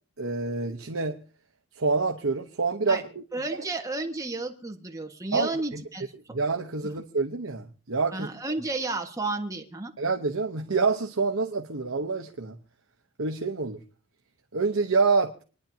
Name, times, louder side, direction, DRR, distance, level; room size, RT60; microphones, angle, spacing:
voice 1, 0.2-1.2 1.8-3.0 3.5-3.6 5.3-5.5 6.3-8.3 10.0-12.6 13.2-13.8 14.5-15.4, right 4 dB, 70° right, 3 dB, 1.0 m, -27 dB
voice 2, 3.3-6.1 6.8-6.9 8.1-9.9, right 2 dB, 15° right, 3 dB, 1.6 m, -32 dB
27.5 x 10.5 x 2.8 m, 0.38 s
head